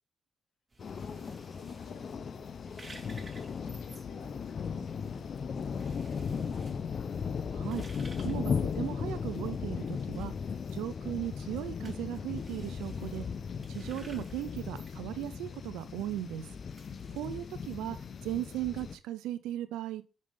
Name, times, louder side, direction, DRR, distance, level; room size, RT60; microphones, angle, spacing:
sound 1, 0.7-17.8, right 2 dB, 30° right, 2.7 m, -57 dB
sound 2, 0.8-19.0, left 6 dB, 60° left, 0.5 m, -37 dB
voice 1, 0.9-6.6, left 4 dB, 80° left, 1 dB, 2.3 m, -53 dB
voice 2, 7.5-7.8 8.2-10.3 10.7-13.2 13.7-16.5 17.2-20.0, right 12 dB, 90° right, 13 dB, 0.4 m, -37 dB
5.3 x 5.2 x 5.2 m, 0.33 s
supercardioid pair, 50°, 0 cm